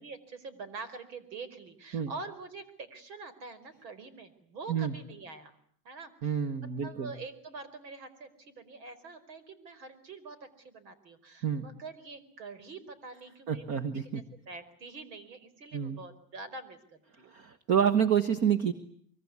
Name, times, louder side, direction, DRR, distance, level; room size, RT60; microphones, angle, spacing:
voice 1, 0.0-5.5 5.8-6.5 6.8-17.4, right 4 dB, 85° right, 13 dB, 5.0 m, -45 dB
voice 2, 6.2-7.1 11.4-11.7 13.5-14.2 15.7-16.0 17.3-18.7, right 8 dB, 30° right, 12 dB, 1.3 m, -28 dB
24.0 x 23.5 x 9.6 m, 0.64 s
supercardioid pair, 165°, 49 cm